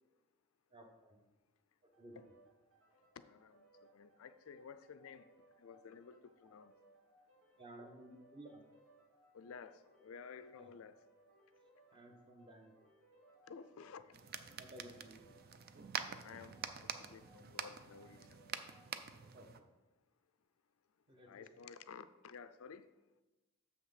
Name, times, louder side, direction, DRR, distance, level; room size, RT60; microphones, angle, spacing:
voice 1, 0.7-1.2 1.8-2.1 7.6-8.6 10.5-10.7 11.9-12.8 14.6-15.2 19.3-19.7 21.1-21.5, right 1 dB, 20° right, 1.0 m, -56 dB
sound 1, 1.9-19.4, right 1 dB, 80° right, 2.4 m, -68 dB
voice 2, 3.2-3.7 3.9-5.3 5.6-6.7 9.3-11.0 13.5-14.7 16.2-16.6 17.1-18.4 21.2-22.9, left 6 dB, 70° left, 0.4 m, -54 dB
sound 2, 14.1-19.6, right 7 dB, 45° right, 0.4 m, -46 dB
7.1 x 5.9 x 5.7 m
head